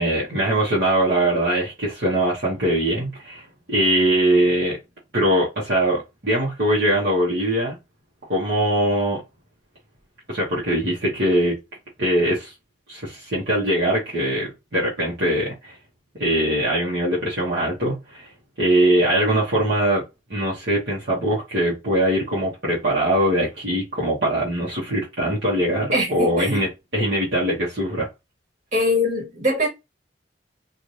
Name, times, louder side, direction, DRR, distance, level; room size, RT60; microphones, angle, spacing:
voice 1, 0.0-4.8 5.1-7.8 8.3-9.2 10.3-11.6 12.0-12.5 12.9-15.8 16.2-18.3 18.6-20.0 20.3-28.1, right 1 dB, 65° right, 1.2 m, -22 dB
voice 2, 25.9-26.6 28.7-29.7, left 1 dB, 40° right, 1.9 m, -22 dB
3.2 x 2.6 x 2.6 m
head